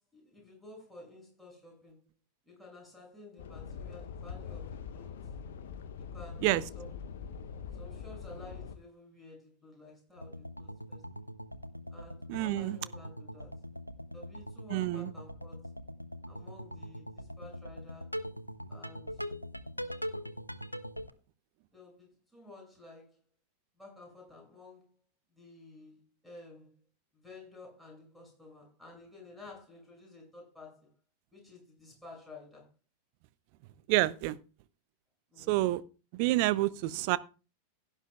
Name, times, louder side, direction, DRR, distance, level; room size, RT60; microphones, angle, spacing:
voice 1, 0.0-2.0 2.5-5.2 6.0-7.0 7.8-11.0 11.9-13.6 14.1-15.7 16.3-18.1 18.7-19.2 21.7-23.2 23.8-24.9 25.4-26.7 27.1-30.9 31.3-32.7 35.3-35.5, left 2 dB, ahead, 7.1 m, -52 dB
sound 1, 3.4-8.8, left 6 dB, 60° left, 0.8 m, -43 dB
sound 2, 10.2-21.1, equal, 90° left, 0.6 m, -42 dB
voice 2, 12.3-12.8 14.7-15.1 33.9-34.4 35.5-35.8 36.1-37.2, right 17 dB, 45° right, 0.6 m, -28 dB
16.5 x 9.9 x 2.4 m
figure-of-eight pair, 90°, 0 cm